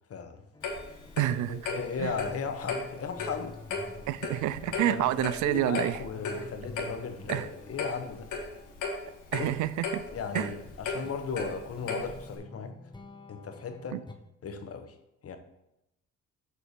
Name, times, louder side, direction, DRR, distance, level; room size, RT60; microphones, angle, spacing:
voice 1, 0.1-0.4 1.5-3.6 4.7-8.3 9.3-9.5 10.1-12.8 13.3-14.0 14.4-14.9 15.2-15.4, left 5 dB, 50° left, 1.1 m, -36 dB
sound 1, 0.5-10.0 10.6-14.1, left 3 dB, 15° left, 0.8 m, -49 dB
Clock, 0.6-12.4, left 3 dB, 80° left, 1.7 m, -37 dB
voice 2, 1.2-1.7 2.0-2.2 4.1-6.0 7.3-7.5 9.3-10.0 10.3-10.5 13.9-14.0, right 13 dB, 80° right, 0.4 m, -28 dB
6.9 x 4.3 x 6.7 m
cardioid pair, 90°, 30 cm